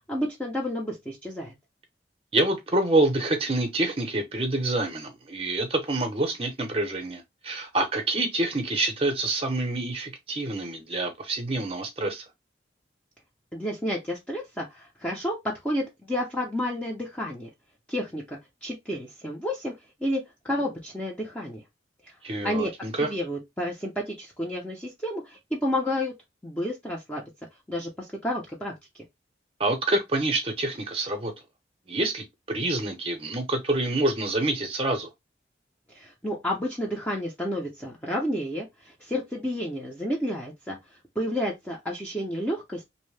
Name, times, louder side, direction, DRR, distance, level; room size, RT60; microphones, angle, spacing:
voice 1, 0.1-1.5 13.5-17.5 17.9-19.7 20.0-21.6 22.4-22.7 23.0-26.1 26.4-27.2 27.7-28.7 35.9-40.8 41.2-42.8, equal, 10° left, 0.5 m, -30 dB
voice 2, 2.3-12.2 22.2-23.1 29.6-31.3 31.9-35.1, right 2 dB, 30° right, 0.6 m, -27 dB
2.6 x 2.1 x 3.1 m
head